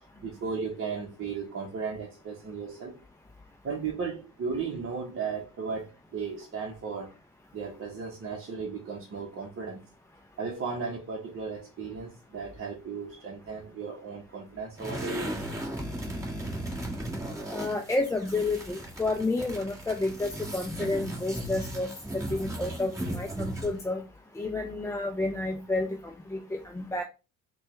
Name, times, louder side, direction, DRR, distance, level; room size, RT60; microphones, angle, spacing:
voice 1, 0.2-3.0 3.6-7.1 7.5-9.8 10.4-15.4, right 5 dB, 40° right, 0.9 m, -35 dB
sound 1, 14.8-23.8, right 1 dB, 10° right, 1.6 m, -36 dB
voice 2, 17.5-24.0 24.4-25.9 26.3-27.0, left 2 dB, 10° left, 0.4 m, -30 dB
4.3 x 2.3 x 3.1 m
supercardioid pair, 80°, 33 cm